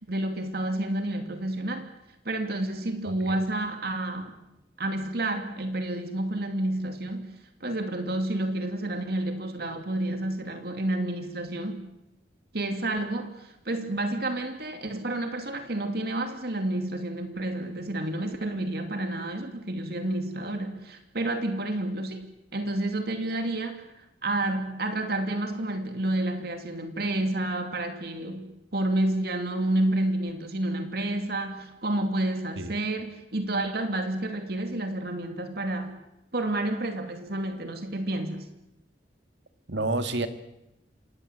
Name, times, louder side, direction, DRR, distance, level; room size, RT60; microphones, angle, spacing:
voice 1, 0.1-1.9 2.2-4.4 4.8-7.3 7.6-11.9 12.5-35.9 36.3-38.5, right 1 dB, 60° right, 6 dB, 2.6 m, -30 dB
voice 2, 3.0-3.4 32.6-32.7 39.7-40.3, right 2 dB, 85° right, 8 dB, 2.2 m, -29 dB
27.0 x 20.0 x 8.1 m, 0.88 s
head